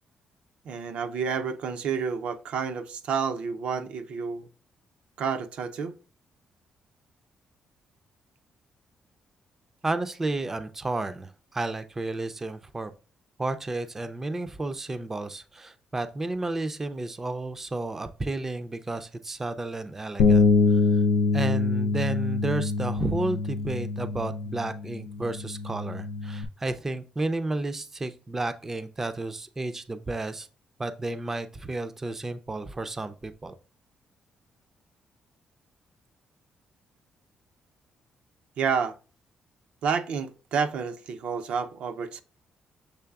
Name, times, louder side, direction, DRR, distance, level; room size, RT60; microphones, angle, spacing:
voice 1, 0.7-4.5 5.2-6.0 38.6-38.9 39.8-42.2, right 6 dB, 70° right, 0.5 m, -29 dB
voice 2, 9.8-12.9 13.4-21.0 21.3-30.5 30.8-33.5, right 2 dB, 20° right, 0.4 m, -32 dB
Bass guitar, 20.2-26.4, left 4 dB, 85° left, 0.4 m, -24 dB
6.8 x 3.2 x 2.3 m
cardioid pair, 125°, 2 cm